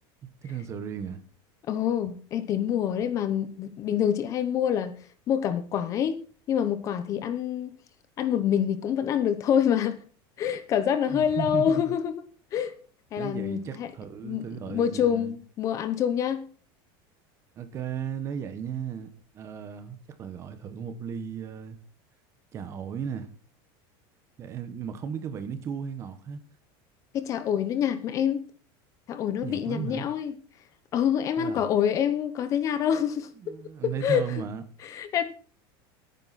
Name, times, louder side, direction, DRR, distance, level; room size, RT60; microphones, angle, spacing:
voice 1, 0.4-1.2 11.1-11.9 13.2-15.4 17.5-19.1 19.3-21.8 22.5-23.3 24.4-26.4 29.4-30.1 31.4-31.6 33.4-34.6, right 7 dB, 25° right, 1.0 m, -35 dB
voice 2, 1.7-4.9 5.3-6.2 6.5-7.7 8.2-10.0 10.4-12.1 12.5-12.7 13.1-13.9 14.2-14.4 14.7-16.4 27.1-28.4 29.1-30.3 30.9-33.3 33.8-34.2 34.8-35.2, left 9 dB, 25° left, 0.8 m, -26 dB
17.0 x 9.3 x 4.2 m
supercardioid pair, 180°, 12 cm